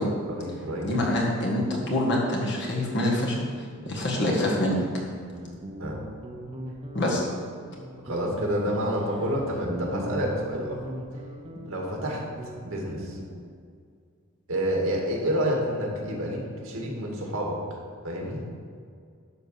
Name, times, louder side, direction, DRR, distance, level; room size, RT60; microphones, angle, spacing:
voice 1, 0.3-0.9 3.8-3.9 5.8-6.0 8.0-10.8 11.7-12.2 12.6-13.2 14.5-17.6 18.0-18.4, equal, 70° right, -1 dB, 2.1 m, -29 dB
voice 2, 0.8-3.4 3.9-4.8 6.9-7.2, left 1 dB, 50° left, -3 dB, 1.8 m, -25 dB
Guitar, 5.0-13.5, equal, 25° right, 0.7 m, -38 dB
11.5 x 3.9 x 6.5 m, 2.2 s
head